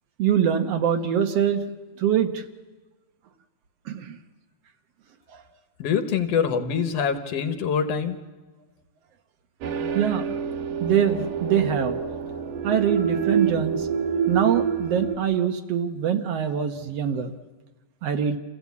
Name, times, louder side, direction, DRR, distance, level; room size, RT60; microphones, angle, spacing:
voice 1, 0.2-1.6 2.0-2.4 3.9-4.2 9.9-10.2 10.8-12.0 12.6-13.9 14.3-17.3 18.0-18.4, right 8 dB, 65° right, 7 dB, 1.7 m, -23 dB
voice 2, 5.8-8.2, left 7 dB, 60° left, 8 dB, 1.8 m, -24 dB
sound 1, 9.6-15.2, right 7 dB, 80° right, 2.8 m, -27 dB
28.0 x 14.5 x 8.3 m, 1.2 s
omnidirectional pair, 3.7 m